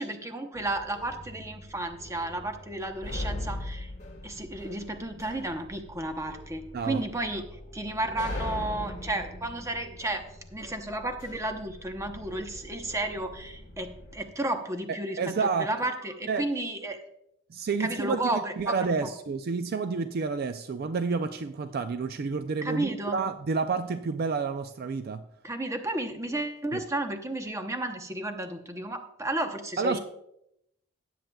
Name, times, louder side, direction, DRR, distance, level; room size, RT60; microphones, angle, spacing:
voice 1, 0.0-3.9 4.2-7.5 7.7-10.2 10.5-17.0 17.8-19.1 22.6-23.2 25.4-30.0, right 1 dB, 15° right, 0.8 m, -33 dB
sound 1, 0.5-14.2, left 1 dB, 35° left, 1.3 m, -41 dB
voice 2, 15.2-15.7 16.3-16.5 17.5-25.2 26.7-26.8 29.8-30.0, right 4 dB, 45° right, 0.4 m, -29 dB
18.0 x 7.6 x 2.3 m
head